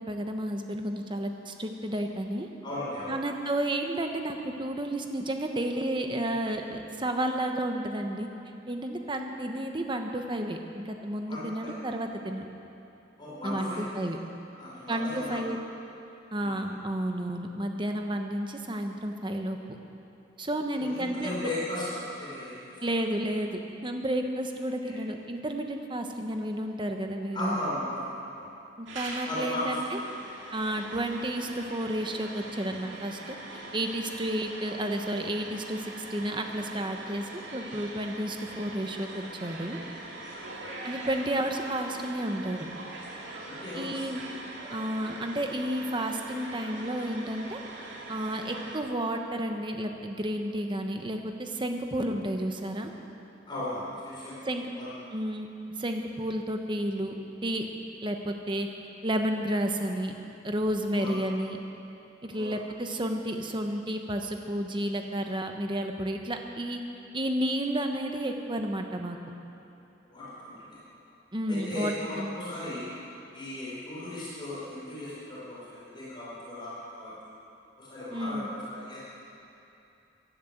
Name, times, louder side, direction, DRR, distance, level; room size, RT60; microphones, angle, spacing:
voice 1, 0.1-2.5 3.1-8.3 8.7-12.5 13.4-14.2 14.9-15.6 16.3-19.8 20.4-21.5 22.8-27.6 28.8-30.0 30.5-39.8 40.8-42.7 43.7-44.2 44.7-47.6 48.1-52.9 54.4-54.6 55.1-55.5 55.8-57.1 57.4-57.7 58.0-58.7 59.0-60.1 60.4-61.6 62.2-66.8 67.1-69.2 71.3-72.3 78.1-78.5, right 1 dB, 25° right, 4 dB, 1.1 m, -31 dB
voice 2, 2.6-3.2 11.3-11.7 13.2-13.8 14.5-15.4 16.4-16.5 20.7-22.8 24.8-24.9 27.3-28.5 29.3-30.0 30.6-30.7 40.2-40.7 43.4-44.1 53.5-54.4 54.7-54.9 61.0-61.1 62.3-62.6 70.0-70.8 71.5-72.8 73.3-77.3 77.8-79.0, left 1 dB, 25° left, -9 dB, 4.7 m, -36 dB
sound 1, 28.9-48.8, right 2 dB, 75° right, 2.4 m, -42 dB
16.0 x 11.0 x 8.0 m, 2.8 s
head